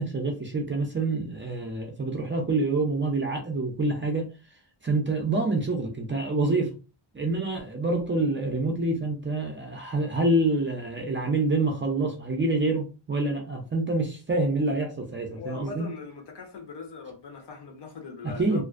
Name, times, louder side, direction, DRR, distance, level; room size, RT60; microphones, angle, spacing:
voice 1, 0.0-4.3 4.8-6.7 7.1-15.9 18.2-18.6, right 2 dB, 25° right, 0.4 m, -27 dB
voice 2, 15.3-18.6, left 5 dB, 60° left, 0.8 m, -40 dB
2.5 x 2.1 x 2.4 m
wide cardioid pair, 155°, 48 cm